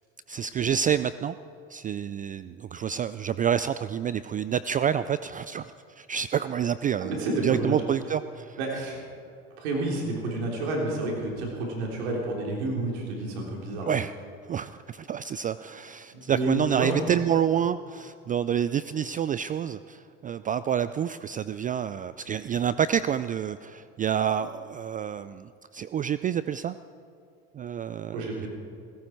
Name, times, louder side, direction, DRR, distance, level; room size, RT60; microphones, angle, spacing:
voice 1, 0.3-1.4 1.7-8.6 13.8-14.1 14.5-26.8 27.5-28.5, right 8 dB, 25° right, 14 dB, 0.3 m, -28 dB
voice 2, 7.0-7.7 8.6-9.0 9.6-13.9 16.1-16.9 28.1-28.5, right 2 dB, 80° right, -1 dB, 3.6 m, -30 dB
16.5 x 16.5 x 4.5 m, 2.5 s
supercardioid pair, 90°, 32 cm